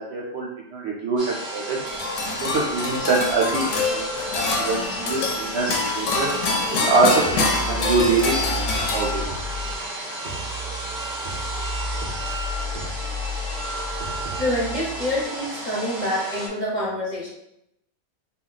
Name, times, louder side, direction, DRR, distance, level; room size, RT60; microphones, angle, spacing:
voice 1, 0.0-1.8 2.4-4.0 4.3-6.3 6.8-7.2 7.6-8.3 8.9-9.1, right 3 dB, 65° right, -2 dB, 0.7 m, -24 dB
sound 1, 1.2-16.5, right 1 dB, 30° right, 0.5 m, -32 dB
sound 2, 1.9-9.5, left 3 dB, 70° left, 0.9 m, -26 dB
sound 3, 7.2-10.0 10.2-15.2, left 1 dB, 90° right, 0.4 m, -33 dB
voice 2, 14.4-17.3, left 1 dB, 40° left, -6 dB, 0.8 m, -26 dB
2.3 x 2.2 x 3.8 m, 0.79 s
omnidirectional pair, 1.4 m